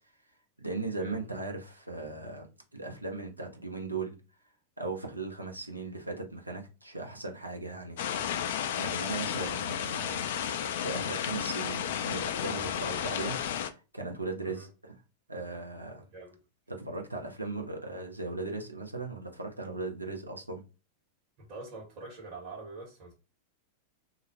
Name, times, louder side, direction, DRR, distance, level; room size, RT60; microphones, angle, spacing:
voice 1, 0.6-2.5 2.7-4.2 4.8-8.0 8.7-13.4 13.7-14.9 15.3-16.0 16.7-20.6, right 3 dB, 85° right, 0.6 m, -38 dB
sound 1, 8.0-13.7, left 9 dB, 55° left, 0.3 m, -33 dB
voice 2, 21.4-23.1, right 3 dB, 45° right, 1.2 m, -44 dB
2.5 x 2.0 x 3.0 m
figure-of-eight pair, 90°, 0 cm